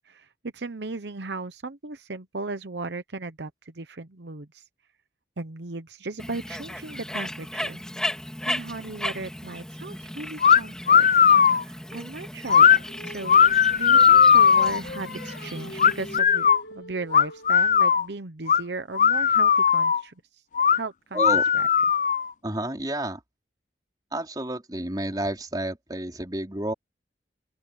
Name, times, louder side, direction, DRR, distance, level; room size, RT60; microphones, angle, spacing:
voice 1, 0.5-4.6 5.4-7.8 8.5-11.1 11.6-13.4 13.7-20.1 20.7-21.7, right 3 dB, 75° right, 0.9 m, -36 dB
Bird, 6.2-16.2, left 1 dB, 5° left, 2.8 m, -36 dB
sound 1, 10.4-10.6 10.9-11.6 12.5-12.8 13.3-14.8 15.8-16.6 17.1-18.0 18.5-18.6 18.9-20.0 20.5-20.8 21.2-22.3, left 7 dB, 45° left, 0.4 m, -18 dB
Singing, 12.5-17.7, left 2 dB, 70° left, 1.7 m, -42 dB
voice 2, 21.1-21.5 22.4-23.2 24.1-26.7, right 1 dB, 20° right, 4.4 m, -30 dB
open air
head